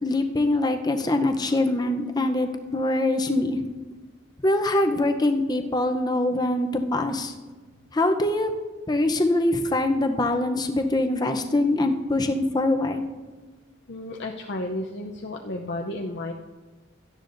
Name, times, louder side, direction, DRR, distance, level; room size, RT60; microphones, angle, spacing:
voice 1, 0.0-3.6 4.4-7.3 7.9-8.5 8.9-13.0, left 2 dB, 20° left, 5 dB, 0.7 m, -23 dB
voice 2, 6.6-7.0 8.8-8.9 10.7-10.9 13.9-16.3, left 1 dB, 60° left, 1 dB, 0.6 m, -33 dB
17.0 x 12.0 x 2.6 m, 1.3 s
head